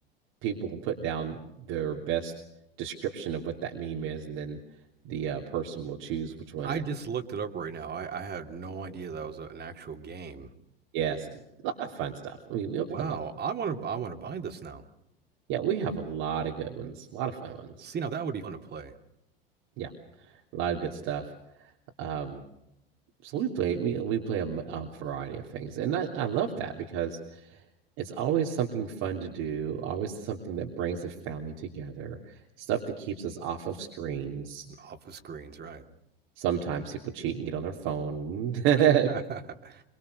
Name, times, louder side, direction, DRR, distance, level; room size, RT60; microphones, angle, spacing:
voice 1, 0.4-2.3 2.8-4.6 5.1-6.8 10.9-13.2 15.5-17.9 19.8-19.9 20.2-21.3 22.0-22.4 23.2-27.6 28.0-34.7 36.4-39.1, right 8 dB, 60° right, 0 dB, 3.3 m, -31 dB
voice 2, 6.6-10.5 12.9-14.9 17.8-19.0 34.7-35.9 39.1-39.8, right 6 dB, 35° right, 6 dB, 2.9 m, -36 dB
25.5 x 24.5 x 6.7 m, 0.83 s
hypercardioid pair, 80°, 30 cm